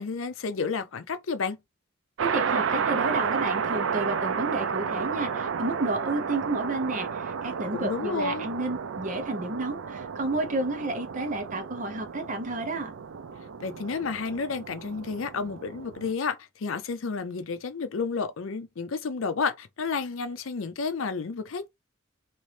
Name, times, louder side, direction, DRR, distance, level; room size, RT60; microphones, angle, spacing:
voice 1, 0.0-1.6 7.7-8.5 13.6-21.7, left 5 dB, 70° left, 0.5 m, -31 dB
voice 2, 2.2-12.9, right 2 dB, 40° right, 0.8 m, -31 dB
sound 1, 2.2-16.1, right 6 dB, 70° right, 0.4 m, -32 dB
3.0 x 2.6 x 3.2 m
head